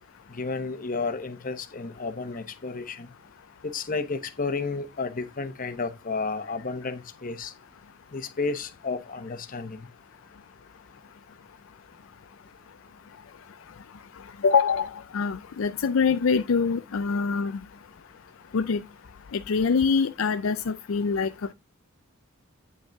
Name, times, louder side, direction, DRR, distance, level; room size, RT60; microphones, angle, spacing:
voice 1, 0.3-3.1 3.6-7.5 8.1-9.9, left 4 dB, 40° left, 1.0 m, -32 dB
voice 2, 14.4-17.5 18.5-18.8 19.3-21.3, left 5 dB, 70° left, 0.4 m, -24 dB
8.9 x 5.2 x 3.5 m
head